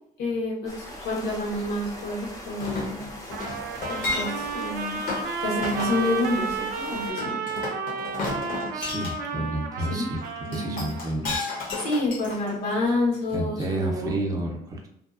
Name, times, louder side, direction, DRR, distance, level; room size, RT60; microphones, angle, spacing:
voice 1, 0.2-3.1 3.9-7.4 9.9-10.1 10.5-10.8 11.8-14.1, left 2 dB, 85° left, -3 dB, 1.0 m, -28 dB
sound 1, 0.7-7.1, left 1 dB, 20° left, 0.6 m, -41 dB
Chink clink, 2.6-4.6 5.1-5.3 5.6-6.0 7.2-9.2 10.5-12.9 13.3-13.4, left 3 dB, 55° left, 0.8 m, -32 dB
Trumpet, 3.3-11.1, right 4 dB, 70° right, 0.4 m, -32 dB
voice 2, 8.7-10.2 10.5-11.5 13.3-14.9, right 1 dB, 20° right, -1 dB, 0.5 m, -30 dB
2.7 x 2.3 x 2.3 m, 0.78 s
cardioid pair, 110°, 17 cm